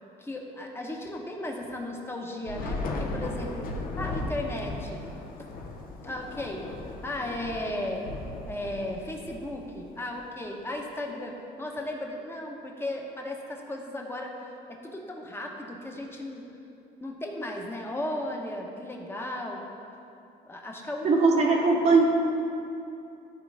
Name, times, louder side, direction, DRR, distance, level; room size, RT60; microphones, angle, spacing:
voice 1, 0.2-3.7 4.0-5.0 5.4-5.5 6.0-6.7 7.0-8.1 8.4-14.3 14.7-16.5 17.0-19.6 20.4-21.9, left 1 dB, 15° left, 0 dB, 1.1 m, -35 dB
Thunder / Rain, 2.4-10.0, left 2 dB, 60° left, 1.0 m, -36 dB
voice 2, 21.0-22.0, right 4 dB, 45° right, -3 dB, 1.0 m, -20 dB
13.5 x 4.6 x 3.5 m, 2.8 s
cardioid pair, 110°, 17 cm